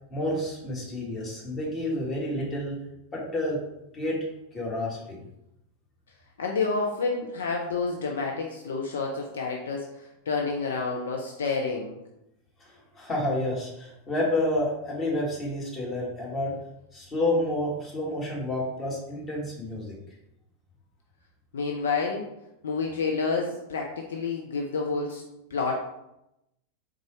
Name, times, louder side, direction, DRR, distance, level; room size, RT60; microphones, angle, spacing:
voice 1, 0.1-2.8 3.1-3.6 3.9-4.2 4.5-5.2 12.6-16.5 16.9-20.0, left 1 dB, 20° left, -4 dB, 1.6 m, -29 dB
voice 2, 6.4-12.0 21.5-22.2 22.6-25.2 25.5-25.8, left 4 dB, 65° left, 0 dB, 0.5 m, -29 dB
3.9 x 3.7 x 3.1 m, 0.85 s
figure-of-eight pair, 90°, 0 cm